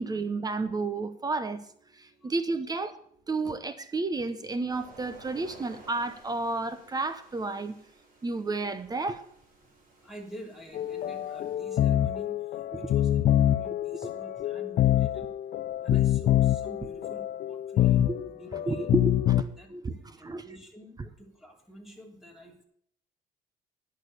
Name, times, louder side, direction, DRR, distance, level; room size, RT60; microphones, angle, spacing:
voice 1, 0.0-1.6 2.0-3.0 3.3-7.8 8.2-9.2 15.9-16.0 18.1-18.2 18.7-20.5, right 3 dB, 25° right, 12 dB, 0.9 m, -31 dB
sound 1, 4.7-11.6, right 2 dB, 50° right, 5.1 m, -55 dB
voice 2, 10.0-15.3 15.8-18.9 19.6-19.7 20.0-22.7, right 1 dB, ahead, 1 dB, 2.9 m, -48 dB
sound 2, 10.7-19.4, left 12 dB, 55° left, 0.6 m, -26 dB
10.5 x 6.3 x 8.1 m, 0.65 s
cardioid pair, 110°, 17 cm